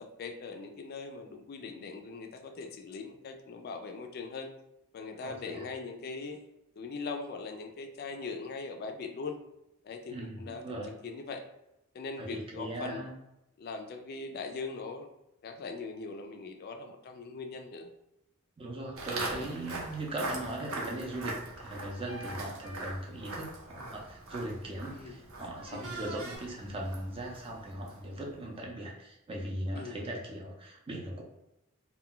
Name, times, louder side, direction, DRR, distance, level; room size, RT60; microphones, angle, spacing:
voice 1, 0.0-4.5 4.9-6.4 6.8-9.3 9.8-11.4 11.9-13.1 13.6-15.1 15.4-17.9 19.3-19.5 24.9-25.2 25.7-26.0 29.8-30.0, left 4 dB, 45° left, 5 dB, 0.3 m, -41 dB
voice 2, 5.2-5.6 10.1-10.9 12.2-13.1 18.6-31.2, right 1 dB, 25° right, -2 dB, 0.5 m, -39 dB
Walk footsteps, 19.0-28.2, right 2 dB, 70° right, 0.7 m, -42 dB
sound 1, 19.0-19.1 21.2-23.8 24.4-24.6 25.5-26.4, right 2 dB, 85° right, 1.2 m, -46 dB
2.2 x 2.2 x 3.7 m, 0.88 s
head